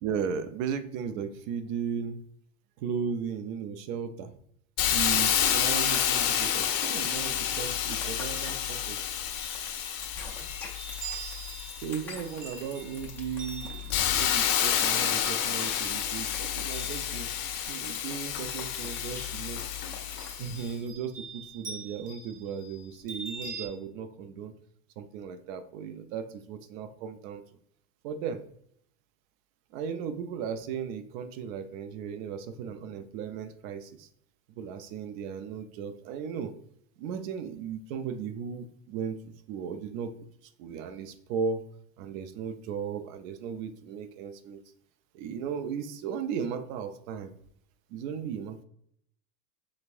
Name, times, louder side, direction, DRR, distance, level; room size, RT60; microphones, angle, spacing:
voice 1, 0.0-2.2 2.8-4.3 4.9-9.0 11.8-17.3 17.7-19.7 20.4-24.5 25.0-27.4 28.0-28.4 29.7-34.1 34.6-36.6 37.0-39.2 39.5-40.2 40.6-41.6 42.0-44.6 45.1-47.3 47.9-48.6, right 7 dB, 65° right, 11 dB, 0.6 m, -36 dB
Hiss, 4.8-12.3 12.9-20.6, left 10 dB, 65° left, 0.8 m, -29 dB
sound 1, 5.9-20.5, left 4 dB, 5° left, 0.3 m, -45 dB
Chime, 9.2-17.6 18.0-19.4 20.2-23.7, right 4 dB, 20° right, 0.8 m, -45 dB
5.2 x 3.5 x 2.5 m, 0.69 s
supercardioid pair, 145°, 43 cm